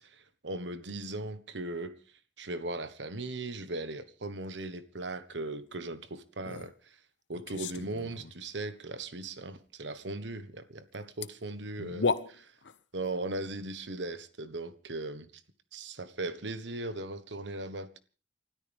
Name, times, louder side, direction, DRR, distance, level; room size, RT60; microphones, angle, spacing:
voice 1, 0.0-2.0 2.4-7.0 7.3-12.5 12.9-15.3 15.7-18.0, right 2 dB, 80° right, 1.4 m, -38 dB
sound 1, 6.4-6.7 7.3-8.3 10.9-11.0 11.2-11.3 11.8-12.8, left 4 dB, 90° left, 0.9 m, -34 dB
29.5 x 13.0 x 3.6 m
head